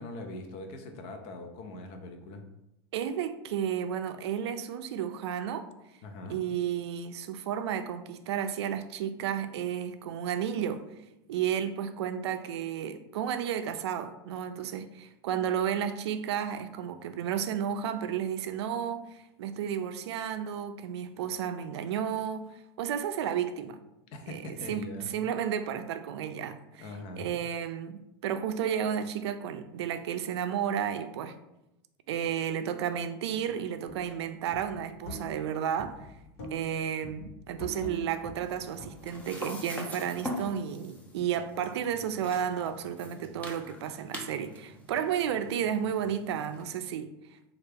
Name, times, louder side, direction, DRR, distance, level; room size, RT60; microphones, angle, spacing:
voice 1, 0.0-2.4 6.0-6.4 24.1-25.1 26.8-27.3, left 2 dB, 50° left, 5 dB, 0.6 m, -41 dB
voice 2, 2.9-5.7 6.3-10.8 11.3-23.8 24.3-24.4 24.7-26.9 27.2-31.4 32.1-36.1 36.5-47.1, right 9 dB, 85° right, 9 dB, 0.4 m, -32 dB
sound 1, 33.8-34.1 34.5-35.5 35.8-36.8 37.0-39.3, equal, 65° left, 1.2 m, -43 dB
sound 2, 38.3-46.6, left 1 dB, 10° left, 0.6 m, -43 dB
3.3 x 2.4 x 3.3 m, 0.89 s
supercardioid pair, 130°, 14 cm